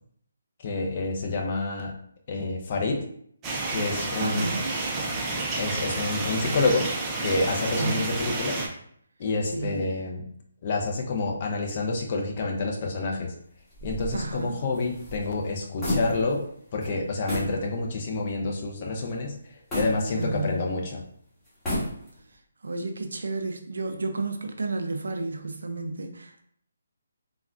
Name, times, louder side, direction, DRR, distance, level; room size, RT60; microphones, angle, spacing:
voice 1, 0.6-1.9 2.3-3.0 3.7-4.5 5.6-6.9 7.2-8.6 9.2-10.2 10.6-13.3 13.8-16.4 16.7-19.3 19.7-21.0, left 3 dB, 40° left, 1 dB, 0.5 m, -28 dB
sound 1, 3.4-8.7, right 2 dB, 20° right, 0.4 m, -30 dB
voice 2, 4.2-4.6 7.7-8.2 9.4-9.9 14.1-14.6 20.1-20.6 22.6-26.4, right 3 dB, 75° right, 5 dB, 0.4 m, -31 dB
sound 2, 13.7-16.5 16.8-16.9 17.3-17.6 18.1-18.2 19.7-20.7 21.5-22.3, equal, 15° left, 1.2 m, -32 dB
3.4 x 2.3 x 2.4 m, 0.65 s
figure-of-eight pair, 150°, 0 cm